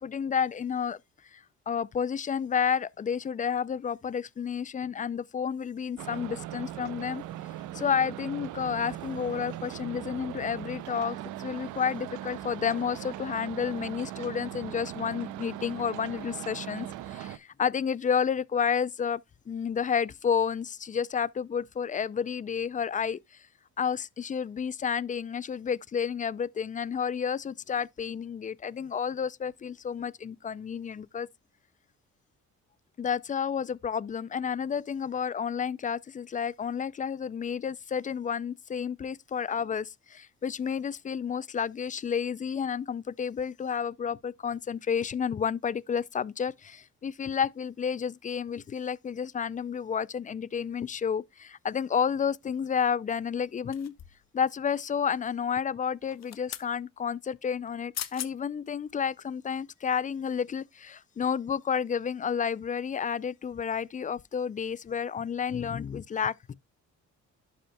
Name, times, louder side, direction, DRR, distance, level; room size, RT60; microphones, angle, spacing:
voice 1, 0.0-1.0 1.3-1.4 1.7-7.2 7.7-19.2 19.5-23.2 23.8-31.3 33.0-53.9 54.3-66.5, left 7 dB, 25° left, 0.3 m, -31 dB
sound 1, 6.0-17.4, right 13 dB, 90° right, 0.6 m, -39 dB
sound 2, 53.7-54.3 56.0-56.7 57.7-57.8 57.9-58.3 58.9-59.0, left 11 dB, 60° left, 0.8 m, -39 dB
11.5 x 5.4 x 2.2 m
cardioid pair, 90°, 30 cm